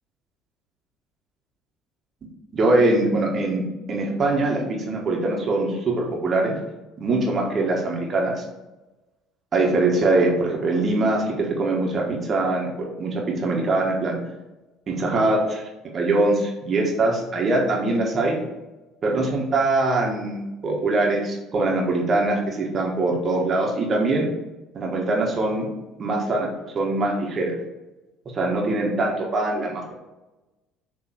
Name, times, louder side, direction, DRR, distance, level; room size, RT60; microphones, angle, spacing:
voice 1, 2.5-6.6 7.0-8.4 9.5-14.2 14.9-15.6 15.9-18.4 19.0-24.3 24.7-25.7 26.0-27.6 28.3-29.9, right 2 dB, 40° right, -1 dB, 1.5 m, -23 dB
6.7 x 3.1 x 4.8 m, 1.1 s
figure-of-eight pair, 55°, 0 cm